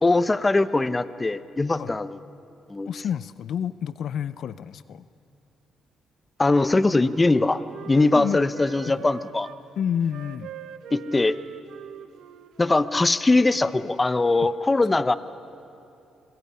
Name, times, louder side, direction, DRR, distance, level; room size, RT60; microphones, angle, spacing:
voice 1, 0.0-2.2 2.7-2.9 6.4-9.5 10.9-11.4 12.6-15.2, left 2 dB, 20° left, 14 dB, 0.9 m, -21 dB
voice 2, 2.9-5.0 8.1-8.4 8.9-9.0 9.8-10.5 14.4-14.5, left 8 dB, 65° left, 15 dB, 0.6 m, -29 dB
Wind instrument woodwind instrument, 6.5-9.6 10.0-13.5, right 10 dB, 80° right, 1.0 m, -43 dB
26.0 x 21.0 x 9.9 m, 2.6 s
cardioid pair, 90°, 0 cm